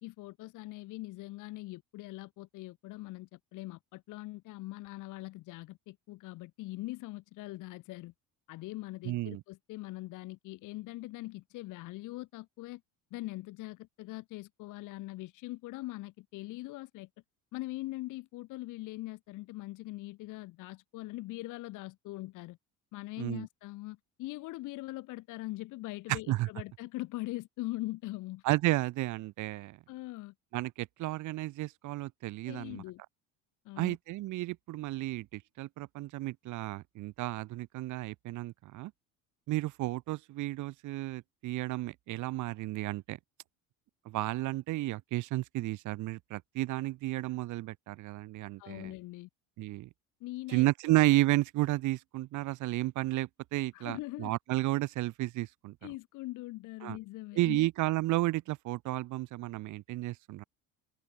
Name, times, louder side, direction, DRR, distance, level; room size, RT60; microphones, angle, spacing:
voice 1, 0.0-8.1 8.5-12.8 13.1-17.1 17.5-22.6 22.9-28.4 29.9-30.3 32.5-33.0 33.6-34.0 48.6-49.3 50.2-50.6 53.7-54.3 55.8-57.7, left 19 dB, 55° left, 2.2 m, -42 dB
voice 2, 9.0-9.4 23.2-23.5 26.1-26.5 28.4-29.8 30.5-32.8 33.8-38.9 39.5-43.2 44.0-48.9 49.6-49.9 50.5-55.7 56.8-57.0 57.3-60.4, right 17 dB, 55° right, 3.2 m, -32 dB
open air
cardioid pair, 175°, 36 cm